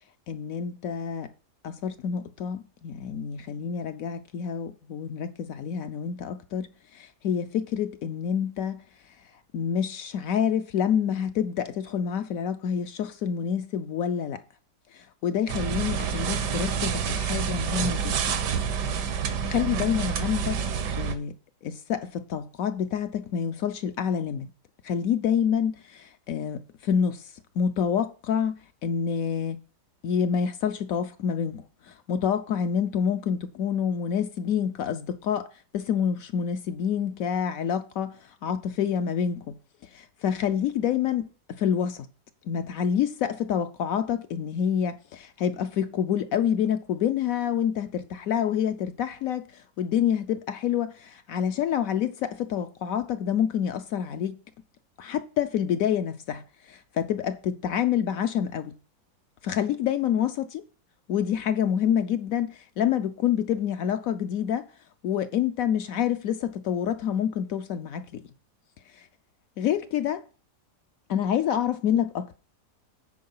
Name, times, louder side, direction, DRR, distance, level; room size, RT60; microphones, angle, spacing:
voice 1, 0.3-1.3 1.6-8.8 9.5-14.4 14.9-18.4 19.1-20.6 21.0-21.3 21.6-24.5 24.8-28.5 28.8-29.6 30.0-35.5 35.7-38.2 38.4-41.3 41.6-42.1 42.5-54.4 55.0-58.8 59.4-60.3 61.1-64.7 65.0-68.2 68.9-69.1 69.6-70.2 71.1-72.4, left 8 dB, 70° left, 0.9 m, -27 dB
sound 1, 15.5-21.2, right 7 dB, 85° right, 1.5 m, -28 dB
9.4 x 4.5 x 5.4 m
omnidirectional pair, 1.8 m